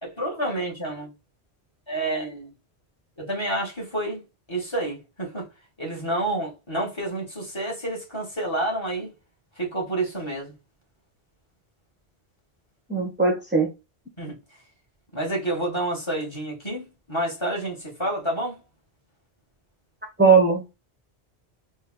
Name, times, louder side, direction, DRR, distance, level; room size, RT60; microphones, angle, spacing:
voice 1, 0.0-1.1 1.9-2.5 3.2-4.2 4.5-5.5 5.8-9.1 9.6-10.5 14.2-14.4 15.1-18.6, right 1 dB, 25° left, 2.3 m, -29 dB
voice 2, 12.9-13.7 20.2-20.7, right 4 dB, 10° right, 0.9 m, -19 dB
4.3 x 3.2 x 3.8 m
omnidirectional pair, 1.1 m